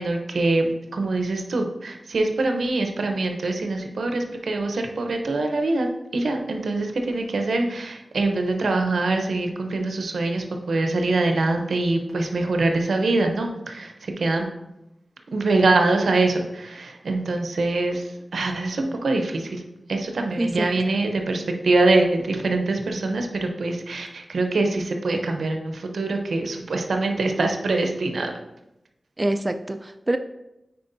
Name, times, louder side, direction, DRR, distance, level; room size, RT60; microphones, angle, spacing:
voice 1, 0.0-5.9 6.1-14.5 15.3-19.6 19.9-28.3, right 2 dB, 90° right, 4 dB, 0.7 m, -24 dB
voice 2, 20.4-20.7 29.2-30.2, right 1 dB, 25° right, 8 dB, 0.4 m, -25 dB
9.3 x 4.4 x 2.6 m, 0.91 s
wide cardioid pair, 60°, 0 cm